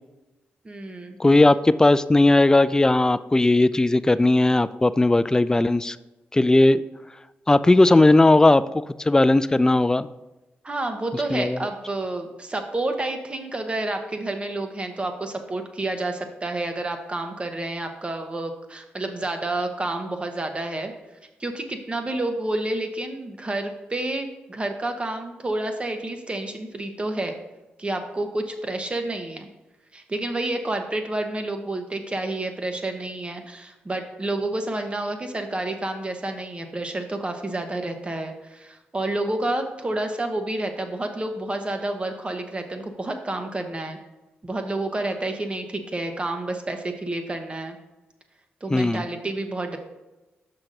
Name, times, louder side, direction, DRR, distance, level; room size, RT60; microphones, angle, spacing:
voice 1, 0.6-1.2 10.6-20.9 21.4-27.4 27.8-29.5 29.9-44.0 44.4-47.8 48.6-49.8, right 2 dB, 30° right, 5 dB, 1.1 m, -29 dB
voice 2, 1.2-6.0 6.3-6.8 7.5-8.6 9.1-10.1 11.3-11.6 48.7-49.0, left 2 dB, 15° left, 14 dB, 0.3 m, -17 dB
6.2 x 5.8 x 3.9 m, 1.1 s
cardioid pair, 65°, 4 cm